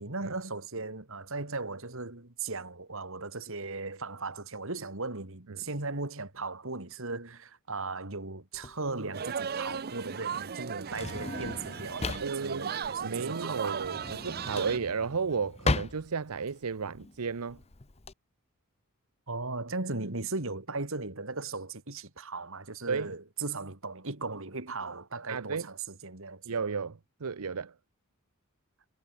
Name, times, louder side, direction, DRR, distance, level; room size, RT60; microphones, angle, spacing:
voice 1, 0.0-13.9 19.3-26.5, right 3 dB, 60° right, 2.7 m, -37 dB
Drawer open or close, 8.5-18.1, left 3 dB, 30° left, 1.0 m, -36 dB
sound 1, 9.1-14.8, right 7 dB, 45° right, 0.6 m, -37 dB
voice 2, 12.2-12.7 13.0-17.6 22.9-23.1 25.3-25.7 26.4-27.7, right 5 dB, 80° right, 0.8 m, -33 dB
head